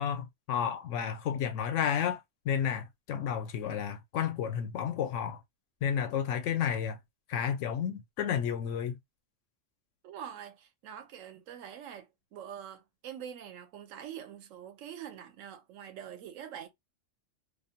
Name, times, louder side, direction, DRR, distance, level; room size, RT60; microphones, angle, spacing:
voice 1, 0.0-2.2 2.5-5.4 5.8-7.0 7.3-9.0, left 8 dB, 75° left, 0.9 m, -31 dB
voice 2, 10.0-16.7, right 9 dB, 85° right, 1.0 m, -45 dB
2.5 x 2.1 x 2.7 m
omnidirectional pair, 1.3 m